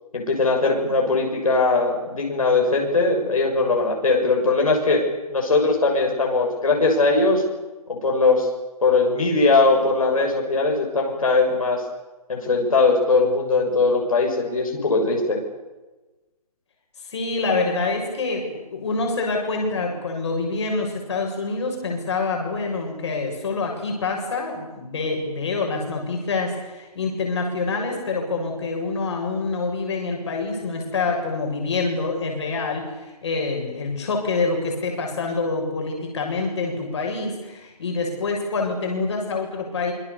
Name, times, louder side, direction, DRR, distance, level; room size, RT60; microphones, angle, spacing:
voice 1, 0.1-7.4 7.9-8.5 8.8-11.8 12.3-15.4, left 3 dB, 60° left, 0 dB, 6.9 m, -20 dB
voice 2, 17.0-39.9, left 3 dB, 45° left, 1 dB, 7.2 m, -26 dB
26.5 x 25.0 x 7.0 m, 1.1 s
figure-of-eight pair, 140°, 20 cm